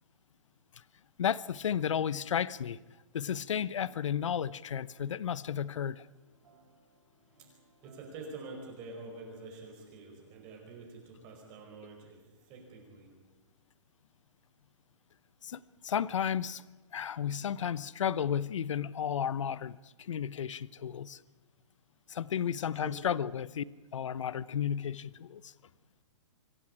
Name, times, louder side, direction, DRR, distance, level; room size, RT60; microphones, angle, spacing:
voice 1, 1.2-2.8 3.1-6.1 15.4-16.6 16.9-21.2 22.1-23.7 23.9-25.5, left 8 dB, 85° left, 20 dB, 0.8 m, -33 dB
sound 1, 3.7-9.2, right 4 dB, 85° right, 5.3 m, -66 dB
voice 2, 7.8-13.1 22.8-23.0, right 3 dB, 25° right, 1 dB, 4.9 m, -47 dB
25.0 x 15.0 x 9.9 m, 1.3 s
hypercardioid pair, 160°, 16 cm